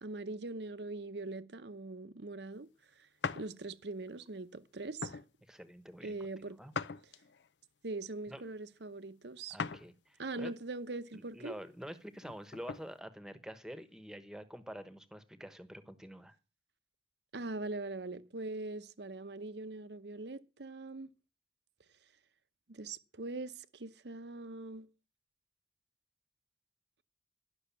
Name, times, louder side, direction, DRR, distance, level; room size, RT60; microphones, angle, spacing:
voice 1, 0.0-2.7 3.0-3.1 3.3-5.2 6.0-6.6 7.8-9.6 10.2-11.6 17.3-21.1 22.7-24.9, right 2 dB, 70° right, 0.9 m, -42 dB
sound 1, 3.2-3.5 4.1-4.3 5.0-5.3 6.7-7.5 9.6-9.9 10.4-10.5 12.2-12.9, left 5 dB, 80° left, 0.6 m, -39 dB
voice 2, 5.4-6.2 6.6-6.7 8.3-8.4 9.5-10.6 11.1-16.3, equal, 5° right, 1.1 m, -47 dB
11.5 x 6.4 x 8.4 m
head